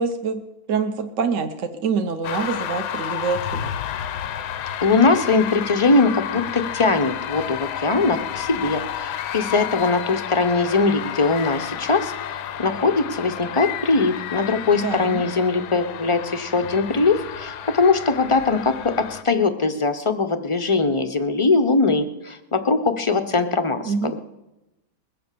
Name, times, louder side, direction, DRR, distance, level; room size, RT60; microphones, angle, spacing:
voice 1, 0.0-3.7 14.7-15.3 23.8-24.2, right 5 dB, 55° right, 6 dB, 1.1 m, -26 dB
sound 1, 2.2-19.2, left 10 dB, 80° left, 1.3 m, -31 dB
voice 2, 4.8-24.2, left 3 dB, 40° left, 9 dB, 0.4 m, -21 dB
21.0 x 7.8 x 6.7 m, 0.96 s
omnidirectional pair, 1.7 m